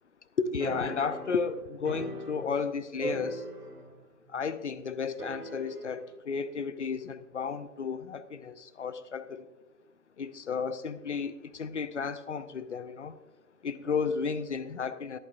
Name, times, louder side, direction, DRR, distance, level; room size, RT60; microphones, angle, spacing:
voice 1, 0.4-3.5 4.3-9.5 10.2-13.2 13.6-15.2, left 5 dB, 50° left, 14 dB, 0.8 m, -33 dB
sound 1, 0.6-2.7 3.0-4.0 4.3-4.4 5.2-6.0, right 2 dB, 80° right, 3.0 m, -39 dB
22.5 x 8.9 x 2.6 m, 1.2 s
figure-of-eight pair, 145°, 44 cm